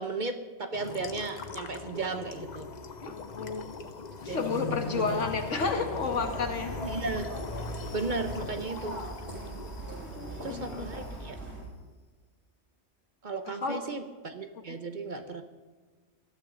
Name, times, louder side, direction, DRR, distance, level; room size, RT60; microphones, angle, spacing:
voice 1, 0.0-2.7 4.2-5.2 6.8-7.3 7.9-9.0 10.4-11.4 13.2-15.4, right 3 dB, 45° right, 8 dB, 1.1 m, -35 dB
fixed the plumbing, 0.7-11.2, left 4 dB, 40° left, 0.8 m, -40 dB
voice 2, 3.1-3.7 4.2-6.8 10.0-10.9 13.6-13.8, left 4 dB, 85° left, 4 dB, 1.9 m, -31 dB
sound 1, 6.1-11.6, right 1 dB, 65° right, 4.2 m, -40 dB
19.0 x 13.0 x 3.9 m, 1.3 s
omnidirectional pair, 1.2 m